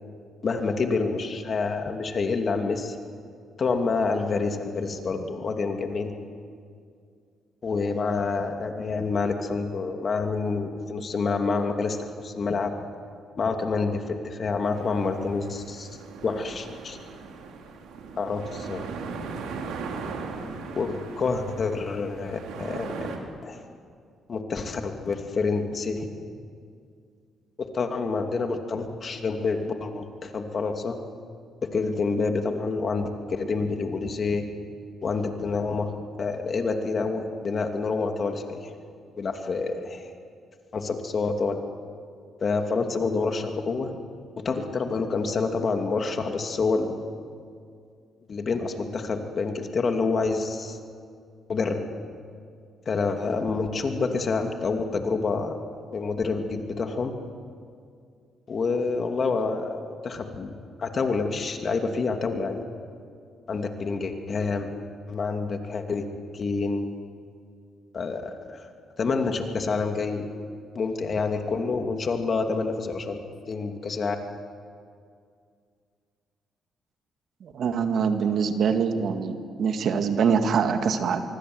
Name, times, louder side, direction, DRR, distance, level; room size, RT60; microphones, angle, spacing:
voice 1, 0.4-3.0 3.6-6.1 7.6-12.7 13.4-15.9 16.2-17.0 18.2-18.9 20.7-23.1 23.4-23.6 24.3-26.1 27.6-31.0 31.7-34.5 35.0-35.9 36.2-38.7 39.2-40.1 40.7-41.6 42.4-43.9 44.4-47.0 48.3-50.8 51.5-51.9 52.9-55.6 55.9-57.1 58.5-60.5 60.8-62.6 63.5-64.7 65.1-66.0 66.3-66.9 67.9-68.7 69.0-70.4 70.7-74.2, left 4 dB, 45° left, 4 dB, 2.7 m, -27 dB
sound 1, 14.6-23.2, right 4 dB, 90° right, 3.3 m, -38 dB
voice 2, 77.4-81.2, right 6 dB, 65° right, 6 dB, 2.1 m, -24 dB
25.0 x 23.5 x 8.0 m, 2.2 s
cardioid pair, 90°, 0 cm